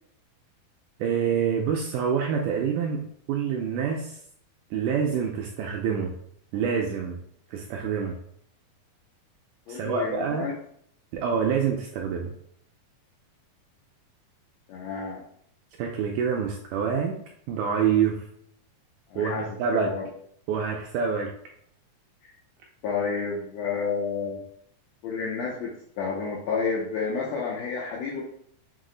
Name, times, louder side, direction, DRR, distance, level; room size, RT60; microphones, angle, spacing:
voice 1, 1.0-4.2 4.7-6.2 6.5-7.2 7.5-8.2 9.7-10.5 11.1-12.3 15.8-17.2 17.5-18.2 19.2-19.9 20.5-21.3, right 7 dB, 80° right, 1 dB, 1.8 m, -26 dB
voice 2, 9.7-10.5 14.7-15.2 19.1-20.1 22.2-22.3 22.8-24.5 25.0-28.2, left 5 dB, 85° left, -2 dB, 1.5 m, -30 dB
6.0 x 2.0 x 3.8 m, 0.67 s
omnidirectional pair, 3.9 m